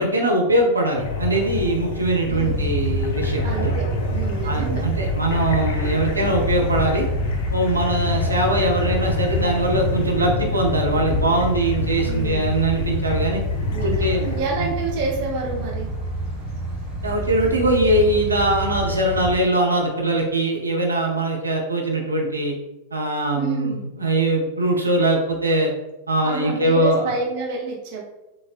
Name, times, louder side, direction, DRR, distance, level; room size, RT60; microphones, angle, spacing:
voice 1, 0.0-3.8 4.4-7.1 7.5-13.4 13.8-14.7 17.0-22.5 22.9-25.7 26.1-27.1, right 1 dB, 80° right, 0 dB, 0.5 m, -21 dB
sound 1, 1.0-14.4, left 4 dB, 55° left, 0.4 m, -27 dB
sound 2, 2.3-19.4, right 2 dB, 20° right, 1.1 m, -28 dB
voice 2, 2.3-2.7 3.4-3.8 4.1-4.8 12.0-12.5 13.7-15.9 23.3-23.9 26.2-28.0, right 4 dB, 45° right, -3 dB, 0.7 m, -28 dB
3.3 x 2.0 x 2.5 m, 0.98 s
figure-of-eight pair, 90°, 0 cm